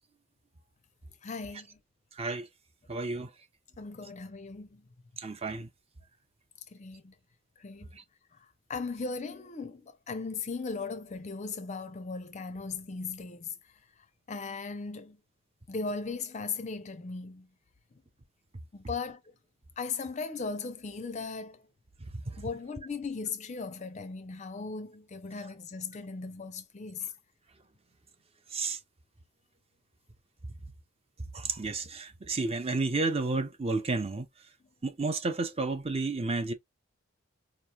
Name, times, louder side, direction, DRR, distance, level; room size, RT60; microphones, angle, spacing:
voice 1, 1.2-1.8 3.8-4.9 6.7-7.1 7.6-7.9 8.7-13.5 14.3-15.2 15.7-17.5 18.7-19.2 19.8-21.6 22.4-27.1, left 4 dB, 30° left, 0.4 m, -37 dB
voice 2, 2.1-2.5 2.9-3.3 5.2-5.7 22.0-22.4 28.5-28.8 31.3-34.3 34.8-36.5, right 3 dB, 25° right, 0.5 m, -31 dB
4.7 x 2.9 x 2.3 m
head